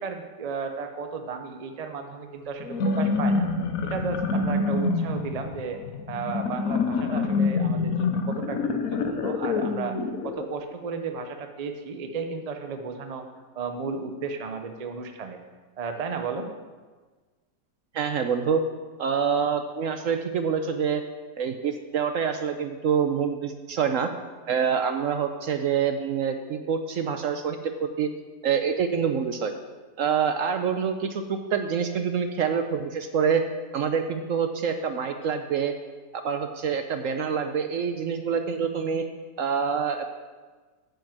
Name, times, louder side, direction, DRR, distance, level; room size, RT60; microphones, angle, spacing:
voice 1, 0.0-3.5 3.8-5.8 6.1-10.0 10.2-13.3 13.5-15.4 15.8-16.5, right 5 dB, 50° right, 6 dB, 0.4 m, -34 dB
sound 1, 2.6-10.5, left 4 dB, 60° left, 1.1 m, -26 dB
voice 2, 17.9-18.6 19.0-21.0 21.4-24.1 24.5-28.1 28.4-29.5 30.0-33.4 33.7-35.7 36.2-39.0 39.4-40.0, right 7 dB, 70° right, 7 dB, 0.8 m, -26 dB
9.0 x 5.2 x 7.5 m, 1.4 s
omnidirectional pair, 1.8 m